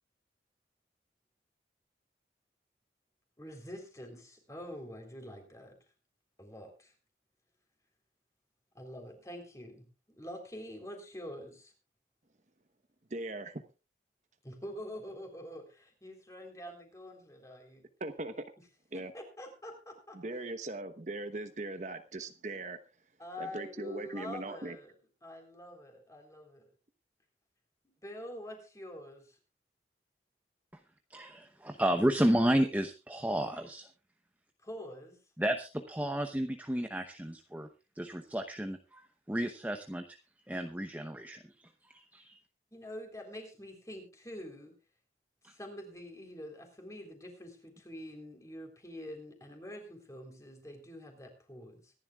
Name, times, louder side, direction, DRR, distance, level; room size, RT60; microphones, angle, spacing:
voice 1, 3.4-5.8 6.4-6.9 8.7-9.9 10.2-11.7 14.4-17.9 18.9-20.2 23.2-24.9 25.2-26.7 28.0-29.4 34.6-35.2 42.7-44.7 45.5-51.9, left 1 dB, 20° left, 4 dB, 3.7 m, -46 dB
voice 2, 13.1-13.6 18.0-18.3 18.9-19.1 20.1-22.8 23.4-24.8, right 2 dB, 40° right, 9 dB, 1.0 m, -39 dB
voice 3, 31.1-33.9 35.4-37.7 38.0-40.0 40.5-42.4 45.4-45.5, right 1 dB, 10° right, 6 dB, 0.8 m, -32 dB
25.0 x 11.0 x 2.4 m, 0.30 s
head